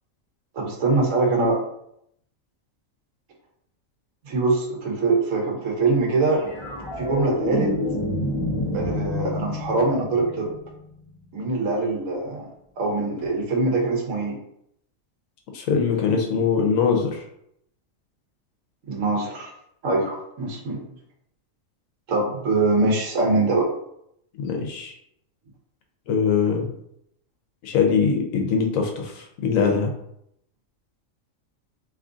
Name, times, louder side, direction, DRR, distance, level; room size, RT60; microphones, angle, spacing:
voice 1, 0.5-1.6 4.3-6.4 7.0-7.7 8.7-10.6 11.3-12.5 12.8-14.4 18.9-19.5 19.8-20.8 22.1-23.7, right 3 dB, 70° right, 0 dB, 1.2 m, -23 dB
sound 1, 6.3-10.8 13.2-13.4, left 1 dB, 35° left, 0.4 m, -28 dB
voice 2, 15.5-17.2 24.4-24.9 26.1-26.7 27.6-29.9, left 6 dB, 85° left, 2 dB, 1.1 m, -22 dB
3.0 x 2.4 x 3.8 m, 0.74 s
omnidirectional pair, 1.4 m